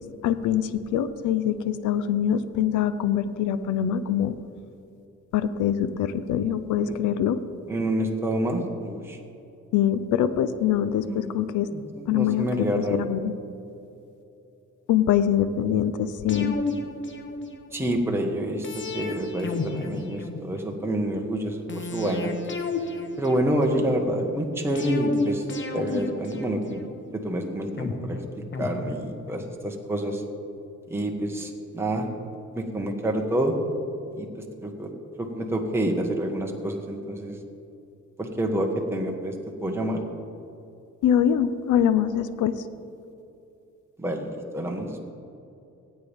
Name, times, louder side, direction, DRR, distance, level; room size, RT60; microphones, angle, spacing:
voice 1, 0.2-4.4 5.3-7.4 9.7-11.7 12.1-13.3 14.9-16.6 41.0-42.6, left 9 dB, 80° left, 12 dB, 0.7 m, -24 dB
voice 2, 7.7-9.2 11.1-11.4 11.7-13.0 17.7-18.7 18.9-22.3 23.2-25.4 25.7-26.8 27.1-30.2 30.9-32.1 32.5-33.5 34.2-34.3 34.6-34.9 35.2-37.4 38.2-39.3 39.6-40.0 44.0-45.0, right 1 dB, 10° right, 1 dB, 1.4 m, -28 dB
sound 1, 16.3-17.9 18.6-20.8 21.7-23.9 24.8-27.1 27.8-29.4 29.7-29.8, left 3 dB, 40° left, 1.3 m, -32 dB
17.5 x 8.9 x 3.6 m, 2.7 s
cardioid pair, 90°, 30 cm